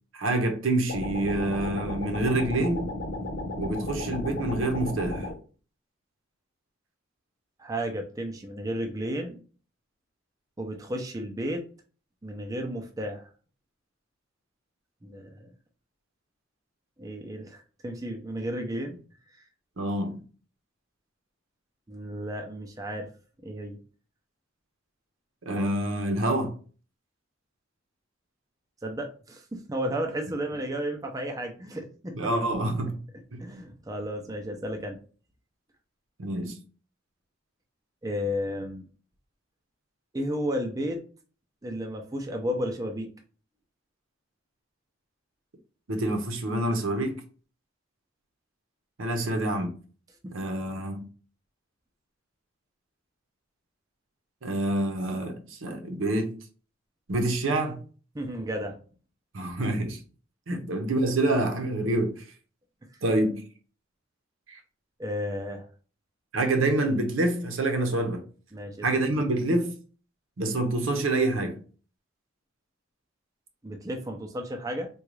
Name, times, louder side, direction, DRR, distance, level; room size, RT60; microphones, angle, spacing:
voice 1, 0.1-2.9 3.6-5.3 19.8-20.2 25.4-26.5 32.1-33.0 33.3-33.4 36.2-36.6 45.9-47.2 49.0-49.7 50.3-51.1 54.4-56.3 57.1-57.8 59.3-60.0 60.5-62.2 63.0-63.4 64.5-64.6 66.3-68.2 68.8-69.7 70.4-71.6, right 2 dB, 85° right, 0.7 m, -27 dB
sound 1, 0.9-5.4, left 1 dB, 60° left, 0.8 m, -34 dB
voice 2, 7.6-9.4 10.6-11.6 12.2-13.3 15.0-15.5 17.0-19.0 21.9-23.1 23.4-23.8 28.8-32.2 33.4-35.0 38.0-38.8 40.1-41.0 41.6-43.1 50.2-50.3 58.1-58.8 65.0-65.7 68.5-68.9 73.6-74.9, equal, 20° right, 0.4 m, -33 dB
3.7 x 2.3 x 3.1 m
head